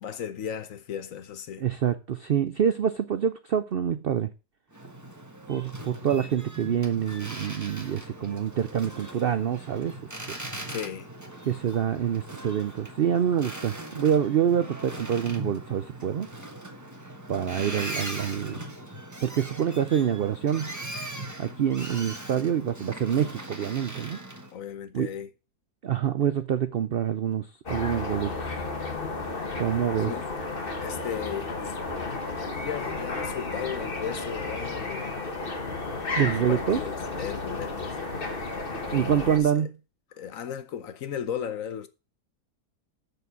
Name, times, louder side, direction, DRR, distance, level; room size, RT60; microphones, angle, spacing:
voice 1, 0.0-1.6 10.7-11.1 24.5-25.3 30.0-30.3 30.8-31.8 32.4-35.1 36.2-39.7 40.1-41.9, left 8 dB, 60° left, 1.1 m, -36 dB
voice 2, 1.6-4.3 5.5-10.0 11.5-16.3 17.3-18.6 19.2-20.8 21.4-24.2 24.9-25.1 25.8-28.3 29.6-30.1 36.2-36.8 38.9-39.7, right 9 dB, 80° right, 0.5 m, -26 dB
Boat Water vehicle, 4.7-24.5, right 1 dB, 10° right, 1.2 m, -40 dB
sound 1, 27.7-39.4, left 3 dB, 35° left, 1.6 m, -33 dB
7.0 x 6.7 x 6.8 m
omnidirectional pair, 1.7 m